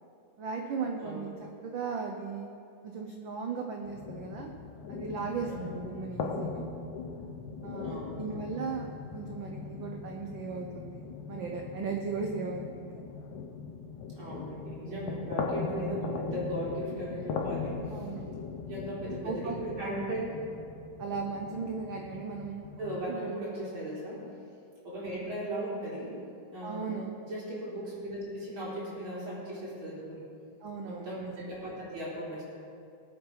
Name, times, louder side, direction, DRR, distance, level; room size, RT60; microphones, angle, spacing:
voice 1, 0.4-2.5 2.8-4.5 4.9-6.6 7.6-13.1 17.9-18.3 19.2-19.6 21.0-22.7 23.1-23.3 26.6-27.1 30.6-31.3, right 5 dB, 70° right, 2 dB, 1.1 m, -37 dB
sound 1, 3.9-23.0, left 4 dB, 80° left, 2.4 m, -39 dB
voice 2, 5.5-5.8 7.8-8.5 14.2-18.0 18.7-20.3 22.8-24.2 24.8-26.1 26.5-26.9 27.2-30.2 30.9-32.4, right 1 dB, 45° right, -7 dB, 4.6 m, -37 dB
20.5 x 8.4 x 4.8 m, 2.4 s
omnidirectional pair, 3.3 m